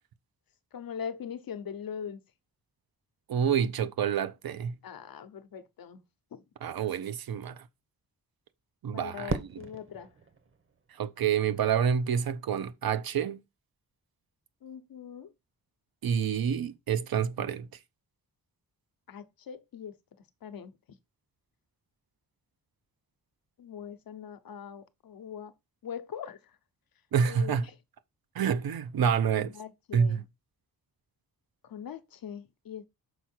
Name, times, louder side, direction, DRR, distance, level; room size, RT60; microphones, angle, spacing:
voice 1, 0.7-2.2 4.8-6.0 6.3-6.4 8.9-10.1 14.6-15.3 19.1-20.0 20.4-20.7 23.6-25.5 25.8-26.4 27.3-27.7 29.3-30.2 31.6-32.8, left 8 dB, 75° left, 0.8 m, -41 dB
voice 2, 3.3-4.8 6.6-7.6 8.8-9.5 11.0-13.4 16.0-17.7 27.1-27.7 28.3-29.5 29.9-30.2, right 7 dB, 85° right, 0.8 m, -28 dB
Fireworks, 9.3-11.5, right 4 dB, 35° right, 0.8 m, -38 dB
6.3 x 4.6 x 4.4 m
wide cardioid pair, 135°, 35 cm